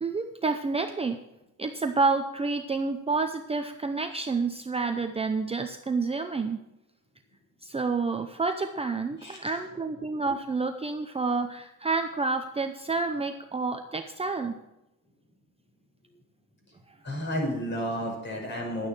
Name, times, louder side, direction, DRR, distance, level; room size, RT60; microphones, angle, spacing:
voice 1, 0.0-1.2 1.6-6.6 7.6-14.6, right 4 dB, 20° right, 6 dB, 0.7 m, -29 dB
voice 2, 17.0-18.9, equal, 35° left, -1 dB, 5.8 m, -31 dB
11.5 x 9.5 x 6.0 m, 0.90 s
cardioid pair, 135°, 33 cm